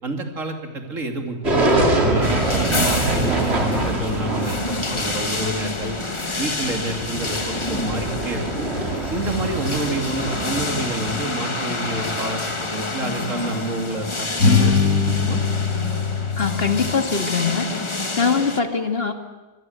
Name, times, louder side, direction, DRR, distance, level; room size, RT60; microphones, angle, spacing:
voice 1, 0.0-6.0 6.4-8.7 9.1-14.3 14.6-14.7 15.0-15.4, right 2 dB, 70° right, 5 dB, 3.1 m, -29 dB
sound 1, 1.4-12.7, right 2 dB, 50° right, 3.2 m, -25 dB
sound 2, 2.2-18.6, left 2 dB, 20° left, 1.4 m, -28 dB
sound 3, 11.9-13.0 13.4-13.6 14.4-16.9, left 5 dB, 80° left, 5.4 m, -22 dB
voice 2, 16.3-17.7 18.2-19.1, left 5 dB, 45° left, 7 dB, 2.1 m, -22 dB
25.5 x 20.5 x 8.0 m, 1.1 s
omnidirectional pair, 1.4 m